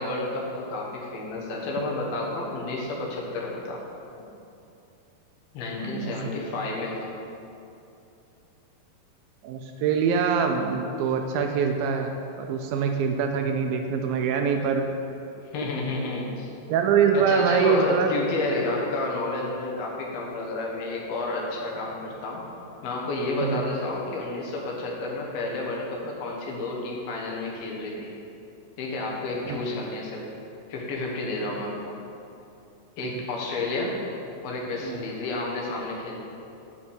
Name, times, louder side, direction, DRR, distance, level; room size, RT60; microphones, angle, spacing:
voice 1, 0.0-3.8 5.5-7.1 15.5-16.5 17.1-22.5 22.8-28.1 28.8-30.2 30.7-32.0 33.0-34.0 34.4-36.2, left 2 dB, 75° left, -2 dB, 3.0 m, -30 dB
voice 2, 5.8-6.2 9.4-14.9 16.7-18.1 23.4-23.6 29.5-29.6 34.8-35.0, right 6 dB, 80° right, 4 dB, 2.2 m, -24 dB
8.5 x 5.7 x 7.0 m, 2.8 s
omnidirectional pair, 4.4 m